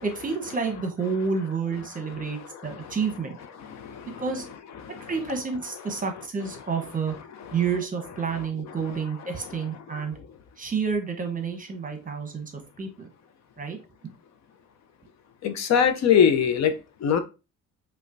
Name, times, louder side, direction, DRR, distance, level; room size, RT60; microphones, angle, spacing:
voice 1, 0.0-3.4 4.2-4.4 5.0-7.1 7.5-10.2 10.6-12.5 12.8-13.1 13.6-13.8 14.0-14.1, right 5 dB, 25° right, 1.0 m, -29 dB
voice 2, 3.7-4.2 4.9-5.1 15.4-16.7 17.0-17.2, left 8 dB, 60° left, 0.6 m, -21 dB
5.0 x 2.3 x 2.6 m
cardioid pair, 90°, 30 cm